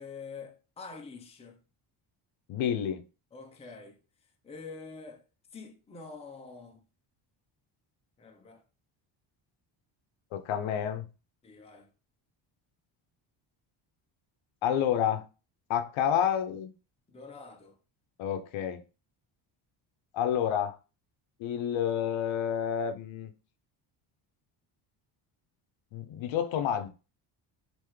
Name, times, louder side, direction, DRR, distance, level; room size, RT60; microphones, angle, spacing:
voice 1, 0.0-1.6 3.3-4.0 4.4-5.2 5.5-6.8 8.2-8.6 11.4-11.9 17.1-17.8, left 4 dB, 15° left, 0.5 m, -46 dB
voice 2, 2.5-3.0 10.3-11.1 14.6-15.3 15.7-16.7 18.2-18.8 20.1-20.8 21.4-23.3 25.9-26.9, left 9 dB, 70° left, 0.7 m, -29 dB
3.5 x 2.8 x 3.1 m
cardioid pair, 115°, 49 cm